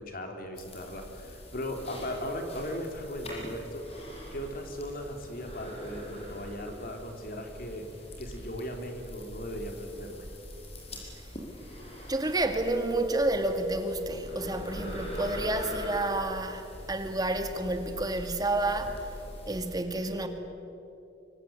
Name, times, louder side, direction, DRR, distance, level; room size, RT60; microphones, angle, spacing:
voice 1, 0.0-3.8 4.3-7.9 8.2-10.3, equal, 50° left, 3.3 m, -37 dB
sound 1, 0.6-19.8, equal, 35° left, 5.8 m, -44 dB
voice 2, 12.1-19.1 19.5-20.3, right 2 dB, 20° right, 1.8 m, -30 dB
25.0 x 24.5 x 7.7 m
head